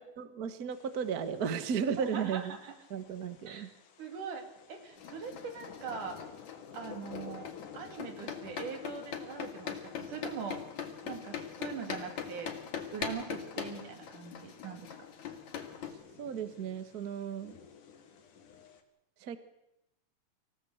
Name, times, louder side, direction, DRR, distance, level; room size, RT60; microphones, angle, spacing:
voice 1, 0.2-2.6 2.9-3.7 16.2-17.5 19.2-19.4, right 7 dB, 45° right, 11 dB, 1.3 m, -34 dB
sound 1, 0.7-18.8, left 7 dB, 85° left, 3.6 m, -54 dB
voice 2, 2.0-2.7 3.5-3.7 4.0-6.2 6.7-7.5 7.7-10.7 11.0-12.5 12.9-14.9, right 6 dB, 80° right, 6 dB, 4.3 m, -42 dB
sound 2, 5.0-15.9, left 7 dB, 65° left, 3.4 m, -42 dB
25.0 x 16.5 x 8.0 m, 0.87 s
omnidirectional pair, 3.6 m